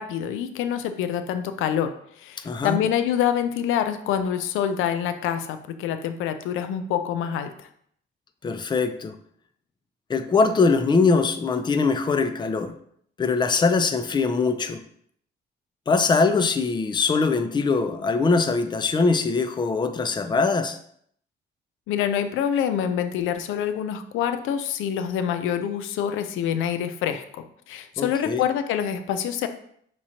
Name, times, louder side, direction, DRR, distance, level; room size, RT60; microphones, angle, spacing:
voice 1, 0.0-7.7 21.9-29.5, left 9 dB, 85° left, 9 dB, 0.4 m, -26 dB
voice 2, 2.4-2.8 8.4-9.1 10.1-12.8 13.2-14.8 15.9-20.8 28.0-28.4, left 4 dB, 25° left, 8 dB, 0.4 m, -22 dB
6.0 x 3.0 x 2.8 m, 0.66 s
cardioid pair, 90°, 20 cm